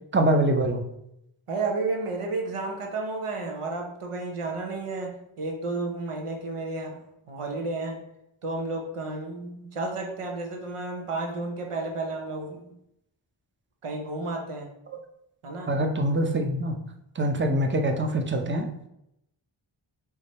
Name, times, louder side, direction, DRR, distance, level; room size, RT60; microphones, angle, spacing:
voice 1, 0.1-0.8 15.7-16.8 17.2-18.7, right 1 dB, 25° right, 5 dB, 0.6 m, -24 dB
voice 2, 1.5-7.0 7.3-8.0 8.4-12.7 13.8-14.7 15.4-15.7, right 3 dB, 85° right, 2 dB, 0.9 m, -32 dB
3.6 x 3.3 x 4.1 m, 0.80 s
cardioid pair, 40°, 50 cm